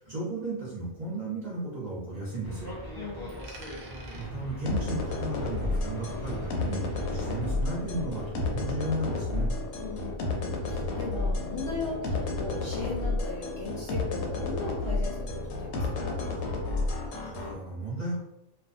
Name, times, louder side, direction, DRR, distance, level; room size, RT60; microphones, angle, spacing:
voice 1, 0.0-2.7 4.1-6.8 7.1-9.5 17.2-18.2, right 1 dB, 35° right, -8 dB, 0.7 m, -34 dB
sound 1, 2.4-7.5, left 1 dB, 25° left, 0.5 m, -42 dB
voice 2, 2.9-3.3 9.8-16.2, left 3 dB, 65° left, -3 dB, 0.8 m, -38 dB
Coin (dropping), 3.3-6.0 6.3-8.3, right 3 dB, 85° right, 1.0 m, -53 dB
sound 2, 4.7-17.5, left 2 dB, 85° left, 1.0 m, -31 dB
2.5 x 2.2 x 2.5 m, 0.89 s
omnidirectional pair, 1.4 m